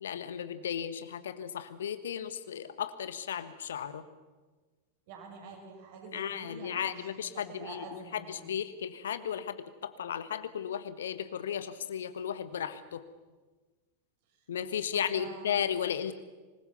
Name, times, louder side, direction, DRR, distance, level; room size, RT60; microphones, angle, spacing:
voice 1, 0.0-4.0 6.1-7.8 8.3-13.0 14.5-16.1, left 8 dB, 65° left, 12 dB, 1.3 m, -35 dB
voice 2, 5.1-8.6 14.3-14.5 14.9-15.6, right 3 dB, 50° right, 1 dB, 7.0 m, -47 dB
25.0 x 21.0 x 7.0 m, 1.3 s
figure-of-eight pair, 90°, 0 cm